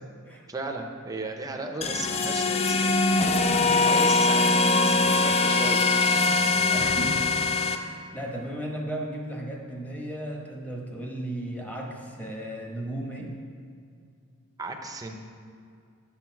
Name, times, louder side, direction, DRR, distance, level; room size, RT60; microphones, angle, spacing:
voice 1, 0.5-3.2 3.6-5.8 14.6-15.2, right 2 dB, 15° right, 3 dB, 0.6 m, -36 dB
sound 1, 1.8-7.8, left 3 dB, 30° left, 0.4 m, -22 dB
voice 2, 6.7-7.2 7.8-13.3, right 1 dB, 5° left, 0 dB, 1.0 m, -35 dB
8.2 x 6.7 x 4.6 m, 2.3 s
head